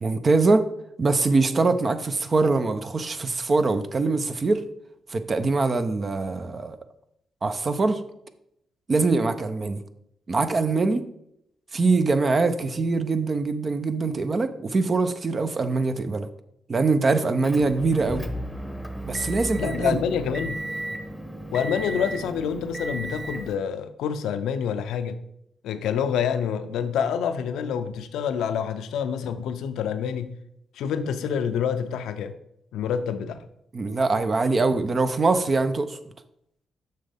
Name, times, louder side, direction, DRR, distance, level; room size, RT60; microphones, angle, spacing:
voice 1, 0.0-0.7 1.0-4.6 5.1-6.8 7.4-8.0 8.9-9.8 10.3-11.0 11.7-16.3 16.7-18.3 19.1-20.0 33.7-36.0, right 3 dB, 45° right, 0.6 m, -23 dB
Motor vehicle (road) / Engine, 17.4-23.5, equal, 5° left, 0.9 m, -34 dB
voice 2, 19.6-20.6 21.5-25.2 25.6-30.3 30.7-32.4 32.7-33.4, left 7 dB, 85° left, 0.5 m, -27 dB
7.5 x 5.5 x 3.5 m
supercardioid pair, 55°, 0 cm